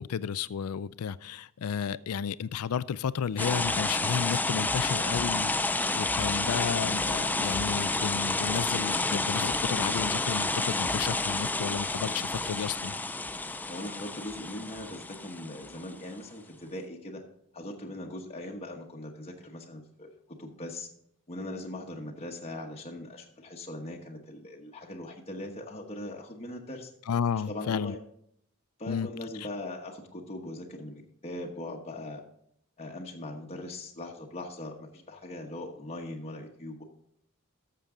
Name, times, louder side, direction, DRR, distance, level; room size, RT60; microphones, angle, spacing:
voice 1, 0.0-12.9 27.1-27.9 28.9-29.1, left 7 dB, 85° left, 0.4 m, -32 dB
sound 1, 3.4-15.9, left 2 dB, 10° left, 0.4 m, -30 dB
voice 2, 13.7-17.2 17.5-20.1 20.4-20.9 21.3-26.9 27.5-28.0 28.8-32.2 32.8-36.8, left 1 dB, 30° left, 1.1 m, -40 dB
13.0 x 6.9 x 3.8 m
head